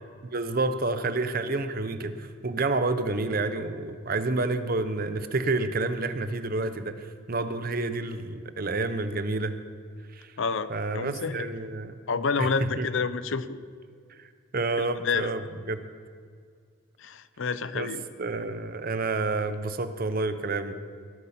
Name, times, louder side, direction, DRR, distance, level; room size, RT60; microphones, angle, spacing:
voice 1, 0.2-9.6 10.1-10.3 10.7-12.0 12.4-12.9 14.2-15.8 17.7-17.9 18.2-20.7, right 3 dB, 45° right, 11 dB, 0.7 m, -29 dB
voice 2, 10.4-11.5 12.1-13.6 14.8-15.3 17.0-18.0, left 5 dB, 65° left, 14 dB, 0.6 m, -29 dB
18.0 x 8.3 x 5.8 m, 2.1 s
head